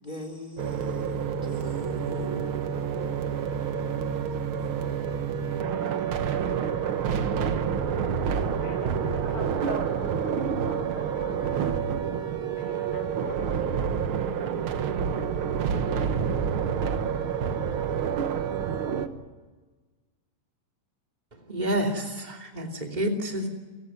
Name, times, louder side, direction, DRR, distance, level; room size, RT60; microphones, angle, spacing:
voice 1, 0.0-4.3, left 2 dB, 15° left, 6 dB, 3.2 m, -42 dB
sound 1, 0.6-19.1, right 7 dB, 60° right, 1.5 m, -28 dB
voice 2, 8.6-11.9 12.6-13.3 13.6-13.9, left 5 dB, 35° left, 6 dB, 1.6 m, -42 dB
voice 3, 21.5-23.5, equal, 15° right, 2 dB, 2.6 m, -29 dB
29.0 x 16.0 x 9.6 m, 1.3 s
omnidirectional pair, 3.9 m